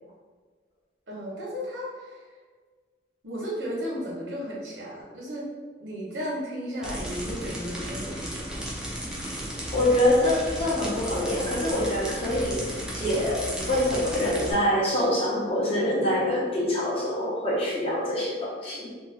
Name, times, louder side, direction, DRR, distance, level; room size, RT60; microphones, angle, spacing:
voice 1, 1.1-2.3 3.2-5.5 5.8-8.6, equal, 80° right, -5 dB, 1.0 m, -34 dB
sound 1, 6.8-14.5, right 1 dB, 5° right, 0.4 m, -34 dB
voice 2, 9.7-18.9, left 1 dB, 30° left, -5 dB, 0.6 m, -25 dB
2.5 x 2.2 x 3.2 m, 1.5 s
head